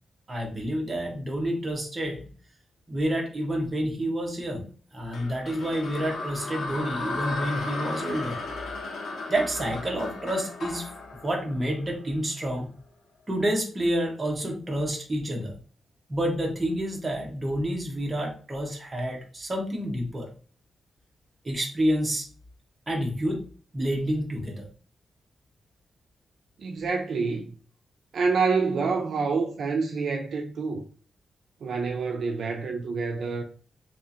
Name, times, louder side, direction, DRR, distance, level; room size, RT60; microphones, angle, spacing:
voice 1, 0.3-2.3 2.9-4.6 4.9-8.4 9.3-10.9 11.2-12.7 13.3-15.6 16.1-20.3 21.4-22.3 22.9-23.4 23.7-24.7, equal, 20° right, 0.7 m, -29 dB
sound 1, 5.1-12.3, left 2 dB, 90° left, 0.6 m, -35 dB
voice 2, 26.6-27.4 28.1-30.8 31.6-33.4, right 4 dB, 60° right, 0.3 m, -27 dB
2.8 x 2.3 x 2.5 m
wide cardioid pair, 160°, 0 cm